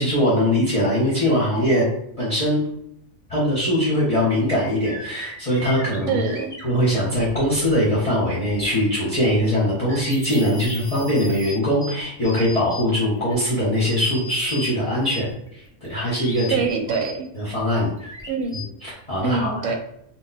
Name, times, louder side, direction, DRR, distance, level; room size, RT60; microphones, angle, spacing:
voice 1, 0.0-1.9 2.2-2.6 3.3-6.2 6.6-16.6 17.4-17.9 18.8-19.7, equal, 35° left, -8 dB, 0.8 m, -21 dB
sound 1, 4.3-8.9 9.2-14.7 15.0-18.6, left 1 dB, 5° left, 0.4 m, -38 dB
voice 2, 6.1-6.5 16.5-17.3 18.3-18.6 19.2-19.8, right 5 dB, 85° right, 4 dB, 1.0 m, -24 dB
2.2 x 2.2 x 3.9 m, 0.76 s
omnidirectional pair, 1.3 m